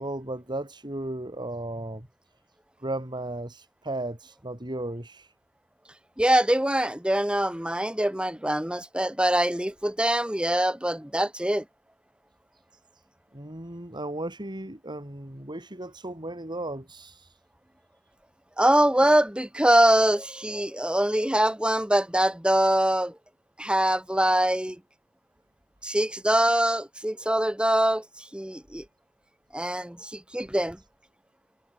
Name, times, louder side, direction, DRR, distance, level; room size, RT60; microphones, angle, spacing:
voice 1, 0.0-2.1 2.8-5.3 13.3-17.4, right 1 dB, 20° right, 3.4 m, -35 dB
voice 2, 6.2-11.6 18.6-23.1 23.6-24.8 25.8-28.0 28.3-28.8 29.5-30.8, right 1 dB, 5° right, 1.3 m, -23 dB
head